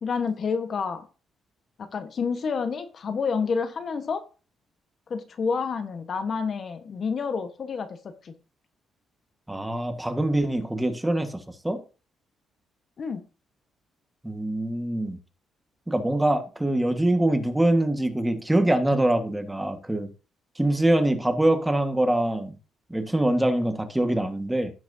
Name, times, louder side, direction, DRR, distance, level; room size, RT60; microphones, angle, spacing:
voice 1, 0.0-1.1 1.8-4.2 5.1-8.3 13.0-13.3, left 5 dB, 50° left, 1.2 m, -29 dB
voice 2, 9.5-11.8 14.2-15.2 15.9-20.1 20.6-22.6 22.9-24.7, right 1 dB, 10° right, 1.5 m, -24 dB
16.0 x 6.0 x 2.7 m
cardioid pair, 90°, 0 cm